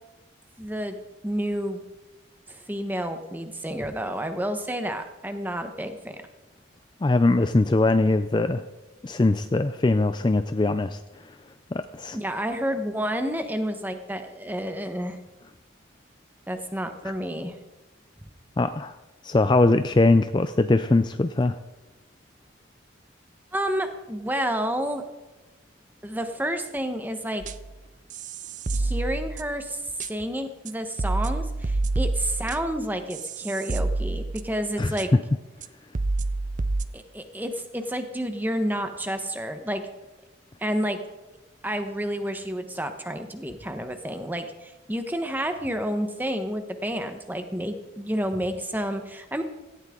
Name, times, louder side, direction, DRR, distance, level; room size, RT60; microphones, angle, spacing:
voice 1, 0.6-1.0 1.2-1.8 2.5-6.2 12.1-15.2 16.5-17.6 23.5-25.0 26.0-27.4 28.7-29.8 30.1-35.1 36.9-39.8 40.6-41.0 41.6-49.4, equal, 10° right, 7 dB, 1.1 m, -30 dB
voice 2, 7.0-8.6 9.0-11.0 11.7-12.2 18.6-18.9 19.2-21.6 34.8-34.9, left 2 dB, 25° left, 10 dB, 0.4 m, -21 dB
sound 1, 27.4-27.7 28.1-29.6 30.0-30.1 30.7-30.8 31.0-34.7 35.0-35.1 35.6-35.7 35.9-36.9, right 2 dB, 40° right, 0.5 m, -28 dB
17.5 x 15.5 x 3.8 m, 1.1 s
head